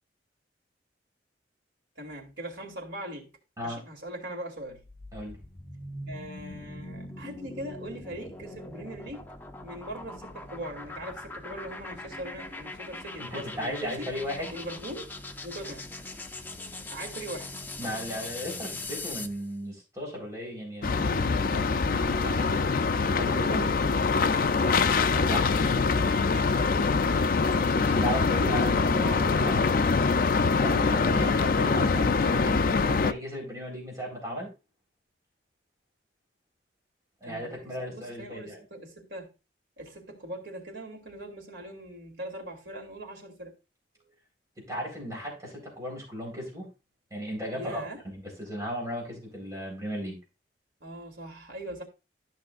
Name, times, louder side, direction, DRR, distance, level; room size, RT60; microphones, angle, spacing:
voice 1, 2.0-3.3 3.6-4.9 6.1-9.2 9.6-14.1 14.5-15.1 15.4-15.9 16.9-17.5 22.4-22.6 24.6-24.9 25.7-27.1 27.5-27.7 28.2-29.3 29.6-29.9 37.2-39.3 39.8-43.5 47.5-48.0 50.8-51.8, right 1 dB, 80° right, 2.8 m, -41 dB
sound 1, 4.6-19.4, left 2 dB, 10° left, 0.6 m, -41 dB
voice 2, 13.2-14.5 17.8-22.5 23.0-23.8 25.1-25.6 27.8-29.9 30.6-34.5 37.2-38.6 44.6-46.7 47.1-50.2, equal, 20° right, 4.0 m, -36 dB
sound 2, 20.8-33.1, left 4 dB, 50° left, 0.4 m, -24 dB
13.0 x 6.1 x 2.5 m
head